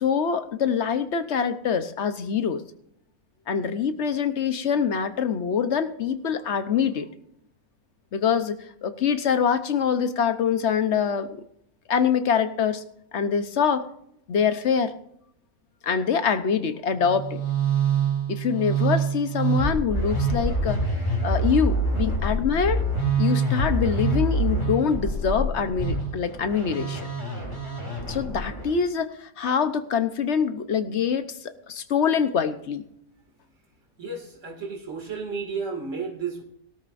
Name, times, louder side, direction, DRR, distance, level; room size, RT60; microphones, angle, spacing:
voice 1, 0.0-2.6 3.5-7.1 8.1-11.3 11.9-12.8 13.1-13.9 14.3-14.9 15.8-17.4 18.3-20.8 21.2-22.8 23.2-27.1 28.1-32.8, left 7 dB, 55° left, 10 dB, 1.1 m, -24 dB
Musical instrument, 17.0-28.8, right 3 dB, 20° left, 3.5 m, -26 dB
voice 2, 34.0-36.4, right 5 dB, 60° right, 2 dB, 2.7 m, -32 dB
18.0 x 13.0 x 2.6 m, 0.72 s
omnidirectional pair, 1.5 m